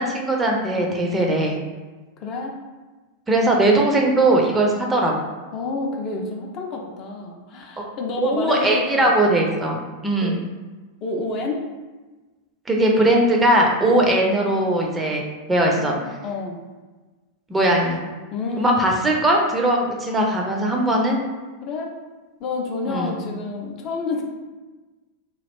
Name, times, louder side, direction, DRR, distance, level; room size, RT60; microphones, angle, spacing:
voice 1, 0.0-1.6 3.3-5.1 8.2-10.4 12.7-15.2 15.5-16.0 17.5-18.0 18.6-21.2 22.9-23.2, right 1 dB, 15° right, 0 dB, 0.5 m, -19 dB
voice 2, 0.7-1.1 2.2-2.5 5.5-9.4 10.2-10.4 11.0-11.6 13.8-13.9 15.7-16.6 17.9-18.0 18.3-19.1 21.6-21.9 22.4-24.2, left 3 dB, 35° left, 1 dB, 0.5 m, -29 dB
3.1 x 2.4 x 3.3 m, 1.2 s
figure-of-eight pair, 90°, 0 cm